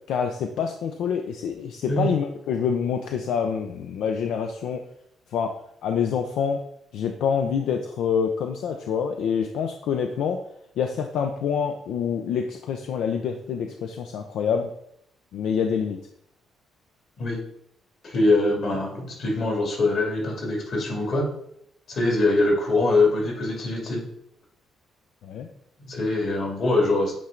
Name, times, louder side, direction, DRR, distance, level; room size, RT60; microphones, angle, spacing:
voice 1, 0.1-4.8 5.3-5.5 5.8-6.6 6.9-10.4 10.8-14.7 15.3-16.0 25.2-25.5, left 7 dB, 80° left, 5 dB, 0.5 m, -26 dB
voice 2, 18.0-21.3 21.9-24.0 25.8-27.1, left 2 dB, 55° left, 0 dB, 2.4 m, -23 dB
8.6 x 3.3 x 3.8 m, 0.72 s
cardioid pair, 90°, 0 cm